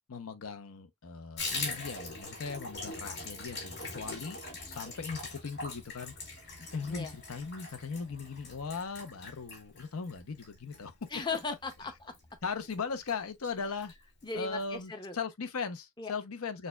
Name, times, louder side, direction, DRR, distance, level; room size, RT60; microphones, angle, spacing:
voice 1, 0.1-4.4 4.6-6.1 6.7-11.1 12.4-13.9 14.3-16.7, left 5 dB, 80° left, 0.7 m, -38 dB
Water tap faucet / Bathtub (filling or washing), 1.4-12.3 12.6-12.8 13.1-13.2 13.4-13.9 14.2-14.3 14.6-14.7, left 3 dB, 50° left, 2.1 m, -42 dB
voice 2, 11.1-12.1 14.2-15.2 16.0-16.1, left 4 dB, 20° left, 0.5 m, -37 dB
6.5 x 2.3 x 2.3 m
head